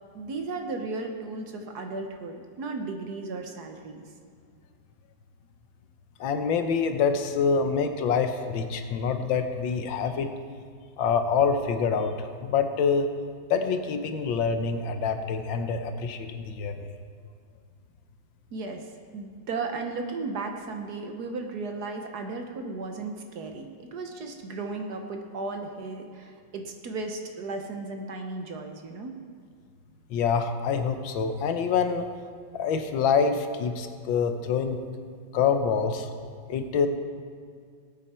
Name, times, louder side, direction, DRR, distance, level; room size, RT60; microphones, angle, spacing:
voice 1, 0.1-4.0 18.5-29.2, right 3 dB, 60° right, 4 dB, 1.5 m, -35 dB
voice 2, 6.2-10.3 11.0-13.1 13.5-16.9 30.1-32.1 32.5-34.8 35.3-36.1 36.5-36.9, left 6 dB, 80° left, 7 dB, 1.6 m, -26 dB
19.0 x 8.3 x 4.4 m, 2.1 s
omnidirectional pair, 2.1 m